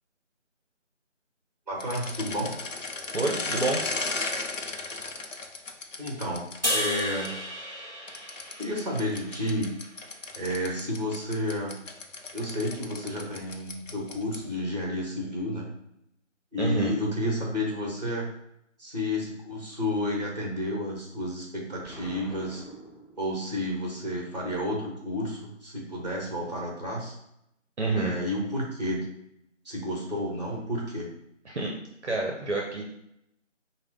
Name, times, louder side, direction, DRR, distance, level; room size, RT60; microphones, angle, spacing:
voice 1, 1.7-2.5 6.0-6.4 6.7-7.3 8.6-9.7 10.4-11.8 12.3-15.7 16.5-18.2 18.8-22.6 23.2-27.1 27.9-29.1 29.6-31.1, left 1 dB, 35° right, -2 dB, 1.1 m, -31 dB
sound 1, 1.8-7.3 8.1-14.6, left 3 dB, 80° left, 0.7 m, -36 dB
voice 2, 3.1-3.8 16.6-16.9 27.8-28.1 31.5-31.7 32.0-32.8, right 2 dB, 65° right, -1 dB, 0.7 m, -28 dB
sound 2, 6.6-9.9, left 1 dB, 35° left, 0.7 m, -33 dB
Explosion, 21.8-23.7, right 2 dB, ahead, 0.4 m, -46 dB
4.1 x 2.2 x 3.6 m, 0.78 s
figure-of-eight pair, 170°, 37 cm